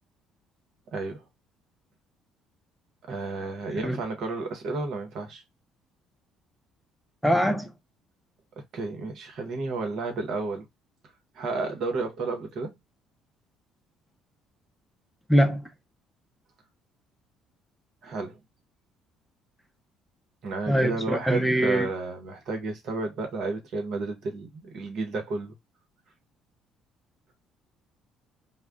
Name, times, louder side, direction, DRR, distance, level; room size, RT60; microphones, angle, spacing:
voice 1, 0.9-1.2 3.1-5.4 8.7-10.7 11.3-12.7 18.0-18.4 20.4-25.6, right 3 dB, 60° right, 1.0 m, -32 dB
voice 2, 7.2-7.7 15.3-15.6 20.7-21.9, equal, 5° left, 0.7 m, -23 dB
2.3 x 2.2 x 3.4 m
hypercardioid pair, 60°, 0 cm